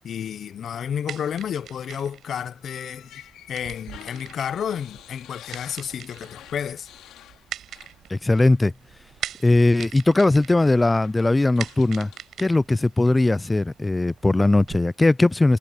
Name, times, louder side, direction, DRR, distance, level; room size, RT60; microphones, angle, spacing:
voice 1, 0.0-6.9, left 8 dB, 60° left, 0.9 m, -31 dB
sound 1, 0.8-14.8, right 10 dB, 70° right, 6.3 m, -42 dB
sound 2, 2.6-8.1 8.4-8.6 9.8-10.0 10.6-12.3, left 12 dB, 85° left, 3.6 m, -48 dB
voice 2, 8.1-8.7 9.4-12.1 12.4-15.6, left 2 dB, 15° left, 0.5 m, -19 dB
cardioid pair, 90°, 0 cm